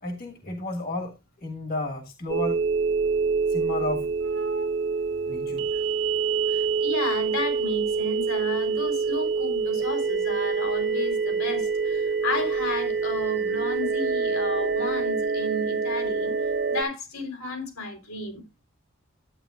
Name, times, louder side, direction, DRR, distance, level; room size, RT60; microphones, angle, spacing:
voice 1, 0.0-2.6 3.5-4.1 5.2-5.7, left 1 dB, 45° left, 1.6 m, -32 dB
sound 1, 2.3-16.8, right 5 dB, 60° right, 1.3 m, -26 dB
voice 2, 6.5-16.3 16.7-18.4, left 2 dB, 90° left, 4.0 m, -33 dB
12.0 x 9.0 x 2.5 m
head